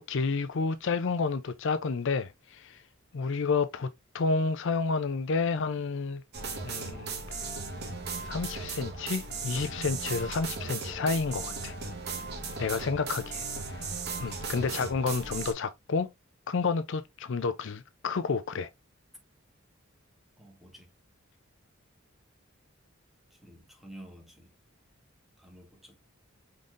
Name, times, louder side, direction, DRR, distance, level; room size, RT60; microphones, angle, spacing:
voice 1, 0.0-2.8 3.1-6.2 6.6-7.2 8.2-11.8 12.6-13.5 14.2-16.1 16.5-18.7, left 4 dB, 65° left, 0.5 m, -30 dB
sound 1, 6.3-15.5, right 4 dB, 55° right, 1.3 m, -37 dB
voice 2, 20.4-20.9 23.3-24.5 25.4-26.0, right 1 dB, ahead, 1.4 m, -51 dB
5.3 x 3.9 x 2.5 m
head